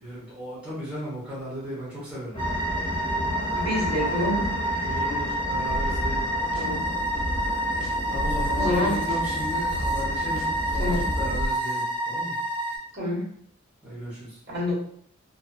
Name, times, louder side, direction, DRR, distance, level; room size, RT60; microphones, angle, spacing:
voice 1, 0.0-2.3 4.8-6.2 8.1-12.3 13.8-14.1, equal, 5° right, -10 dB, 0.8 m, -35 dB
sound 1, 2.3-11.4, equal, 30° left, 1.0 m, -34 dB
sound 2, 2.4-12.8, right 1 dB, 25° right, 1.3 m, -28 dB
voice 2, 3.5-4.5 6.5-6.8 8.5-9.0 10.8-11.0 13.0-13.2 14.5-14.7, left 1 dB, 55° right, -8 dB, 1.2 m, -27 dB
sound 3, 5.7-6.2 6.5-6.6 7.0-7.5 7.8-8.8 9.1-9.2 9.6-11.5, right 1 dB, 80° right, 0.5 m, -31 dB
2.4 x 2.4 x 2.2 m, 0.63 s
head